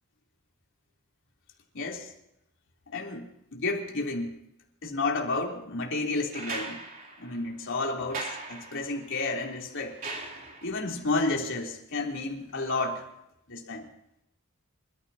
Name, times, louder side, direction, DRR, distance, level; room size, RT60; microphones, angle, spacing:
voice 1, 1.7-2.1 2.9-4.4 4.8-6.8 7.2-10.0 10.6-13.1 13.5-13.8, left 3 dB, 60° left, 0 dB, 3.5 m, -31 dB
sound 1, 6.3-10.9 12.5-12.6, right 3 dB, 40° right, 3.3 m, -40 dB
29.0 x 14.0 x 2.9 m, 0.80 s
head